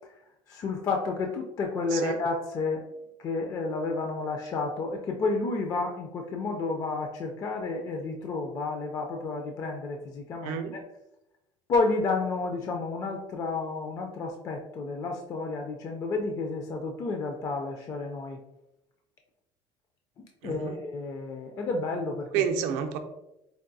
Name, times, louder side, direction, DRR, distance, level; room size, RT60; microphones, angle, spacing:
voice 1, 0.5-2.8 3.2-10.8 11.7-18.4 20.2-22.4, left 3 dB, 30° left, 3 dB, 0.3 m, -31 dB
voice 2, 10.4-10.7 20.4-20.7 22.3-23.0, right 8 dB, 70° right, 6 dB, 0.5 m, -29 dB
4.6 x 2.5 x 2.6 m, 0.88 s
cardioid pair, 155°, 12 cm